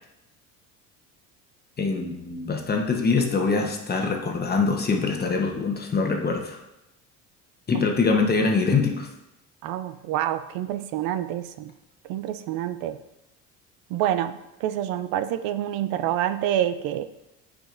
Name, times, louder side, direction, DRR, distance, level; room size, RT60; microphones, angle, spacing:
voice 1, 1.8-6.6 7.7-9.1, left 4 dB, 30° left, 2 dB, 1.0 m, -24 dB
voice 2, 9.6-11.7 12.1-13.0 13.9-17.0, right 11 dB, 85° right, 12 dB, 0.5 m, -27 dB
9.0 x 5.0 x 2.6 m, 0.91 s
cardioid pair, 100°, 34 cm